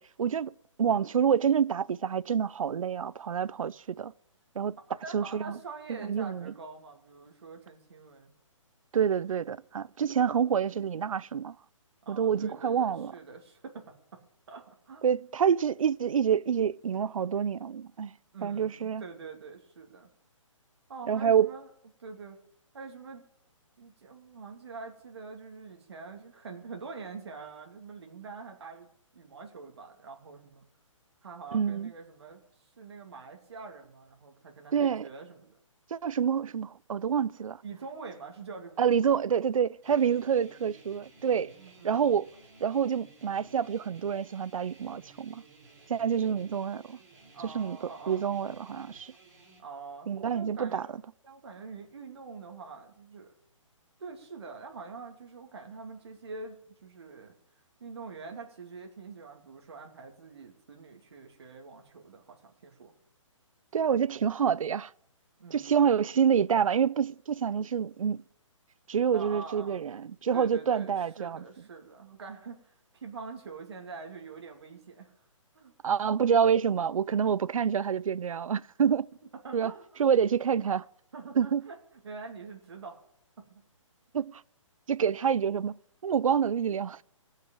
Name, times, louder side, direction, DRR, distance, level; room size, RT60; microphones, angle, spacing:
voice 1, 0.0-4.1 4.6-4.8 5.1-5.6 5.9-6.5 8.9-11.6 12.1-13.1 15.0-18.1 18.4-19.0 21.1-21.5 31.5-31.9 34.7-35.0 35.9-37.6 38.8-41.5 41.8-42.3 42.6-45.4 45.9-47.0 47.4-47.8 48.1-49.1 50.1-50.9 63.7-64.9 65.5-68.2 68.9-71.4 75.8-79.1 79.5-79.7 80.0-80.8 81.4-81.6 84.1-84.4 84.9-85.7 86.0-87.0, right 7 dB, 80° right, 0.5 m, -27 dB
voice 2, 5.0-8.3 12.0-13.9 14.5-15.0 18.3-20.1 20.9-21.7 22.0-22.4 22.7-23.2 23.8-28.9 29.1-30.6 31.2-32.4 32.8-35.6 37.6-38.8 41.5-42.0 47.3-48.2 49.6-50.1 50.3-50.9 51.2-53.3 54.0-57.3 57.8-62.9 65.4-65.9 69.1-69.8 70.3-75.1 75.5-75.7 79.3-79.9 81.1-83.0 83.5-83.6, right 4 dB, 50° right, 2.6 m, -45 dB
sound 1, 39.8-49.6, right 3 dB, 35° right, 3.6 m, -56 dB
18.0 x 6.6 x 8.8 m
hypercardioid pair, 180°, 17 cm